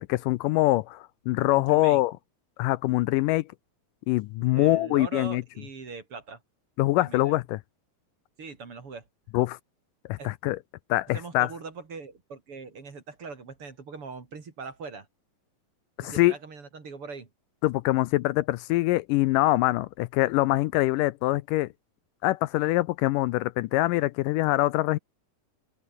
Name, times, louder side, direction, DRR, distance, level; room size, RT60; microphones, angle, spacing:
voice 1, 0.0-2.1 2.6-3.4 4.1-5.4 6.8-7.6 9.3-9.6 10.1-10.6 10.9-11.5 16.0-16.3 17.6-21.7 22.2-25.0, left 18 dB, 80° left, 2.1 m, -24 dB
voice 2, 1.5-2.0 4.4-6.4 7.0-7.4 8.4-9.0 10.2-10.3 11.1-15.1 16.0-17.3, right 4 dB, 40° right, 3.9 m, -41 dB
open air
omnidirectional pair, 4.0 m